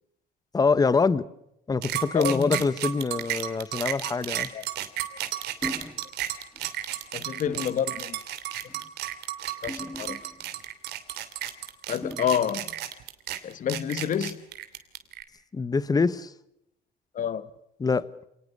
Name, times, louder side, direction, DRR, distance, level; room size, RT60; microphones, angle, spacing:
voice 1, 0.5-1.2 1.7-4.5 15.5-16.3 17.8-18.1, left 4 dB, 20° left, 1.2 m, -24 dB
sound 1, 1.8-15.2, right 13 dB, 80° right, 2.8 m, -33 dB
voice 2, 2.1-2.6 4.5-4.7 7.1-8.2 9.6-10.2 11.9-12.7 13.4-14.4 17.1-17.5, left 8 dB, 50° left, 1.5 m, -28 dB
sound 2, 5.6-6.1 6.5-6.7 7.5-7.8 8.6-8.9 9.7-10.6 12.0-12.5, left 1 dB, 5° left, 2.0 m, -39 dB
27.5 x 19.5 x 6.7 m
cardioid pair, 110°, 17 cm